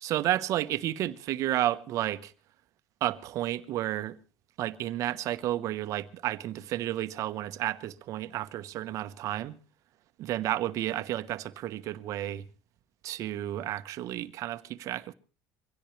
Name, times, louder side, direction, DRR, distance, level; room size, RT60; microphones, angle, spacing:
voice 1, 0.0-2.3 3.0-4.2 4.6-9.6 10.2-12.5 13.0-15.1, right 13 dB, 60° right, 1.1 m, -31 dB
24.0 x 17.0 x 3.3 m
supercardioid pair, 110°, 6 cm